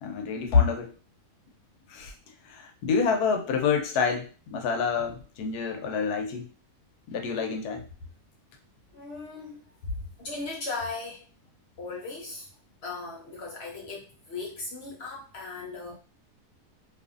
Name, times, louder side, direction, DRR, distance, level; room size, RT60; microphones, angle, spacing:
voice 1, 0.0-0.9 1.9-2.1 2.5-6.5 7.1-7.9, left 5 dB, 75° left, 5 dB, 1.1 m, -27 dB
voice 2, 8.9-9.6 10.2-11.2 11.8-12.5 12.8-15.9, left 3 dB, 60° left, -2 dB, 0.7 m, -37 dB
2.7 x 2.5 x 2.4 m, 0.33 s
omnidirectional pair, 1.7 m